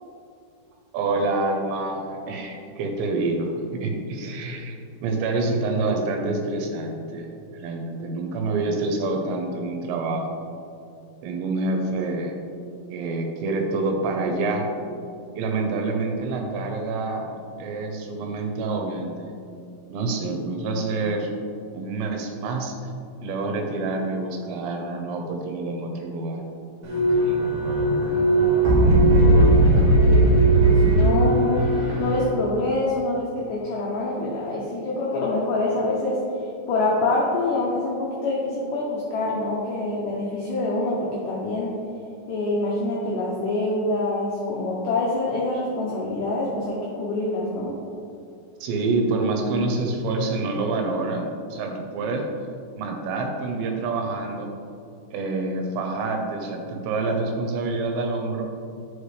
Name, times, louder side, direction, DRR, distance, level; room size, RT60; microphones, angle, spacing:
voice 1, 0.9-7.3 7.5-10.3 11.2-12.4 12.9-14.7 15.4-17.3 17.6-19.3 19.9-21.3 21.7-22.7 23.2-26.4 27.2-27.4 48.6-52.3 52.7-54.5 55.1-58.5, right 3 dB, 85° right, 2 dB, 3.1 m, -27 dB
sound 1, 26.8-32.2, right 1 dB, 55° right, 2.1 m, -18 dB
voice 2, 28.1-31.6 32.0-41.8 42.3-47.8, left 2 dB, 85° left, -3 dB, 1.8 m, -26 dB
9.9 x 5.1 x 3.2 m, 2.6 s
omnidirectional pair, 5.0 m